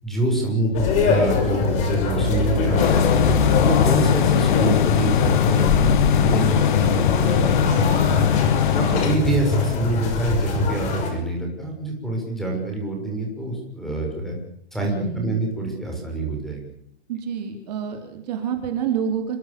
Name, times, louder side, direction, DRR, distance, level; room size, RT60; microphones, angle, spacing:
voice 1, 0.0-3.3 3.6-8.2 8.7-14.4 14.7-16.6, right 2 dB, ahead, 0 dB, 6.4 m, -26 dB
sound 1, 0.7-11.1, left 4 dB, 20° left, 6.0 m, -22 dB
sound 2, 2.8-9.1, left 10 dB, 45° left, 1.1 m, -20 dB
voice 2, 8.8-9.1 14.8-15.4 17.1-19.4, right 7 dB, 35° right, 5 dB, 4.2 m, -28 dB
27.5 x 25.0 x 7.1 m, 0.71 s
hypercardioid pair, 165°, 33 cm